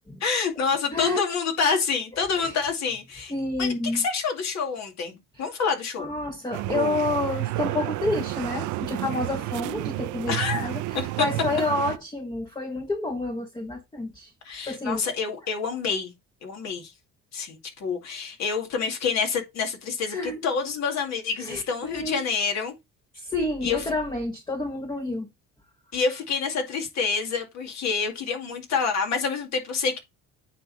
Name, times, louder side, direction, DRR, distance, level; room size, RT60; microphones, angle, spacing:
voice 1, 0.2-3.3 3.6-6.1 10.3-10.8 11.2-11.3 14.4-16.1 16.4-16.9 17.3-22.7 23.6-23.8 25.9-30.0, left 5 dB, 60° left, 2.4 m, -27 dB
voice 2, 3.3-4.0 5.4-5.5 6.0-14.3 14.6-15.0 20.1-20.4 21.5-22.2 23.2-25.3, left 2 dB, 15° left, 1.1 m, -29 dB
sound 1, 6.5-12.0, right 18 dB, 70° right, 0.6 m, -30 dB
9.0 x 3.8 x 4.1 m
cardioid pair, 115°, 31 cm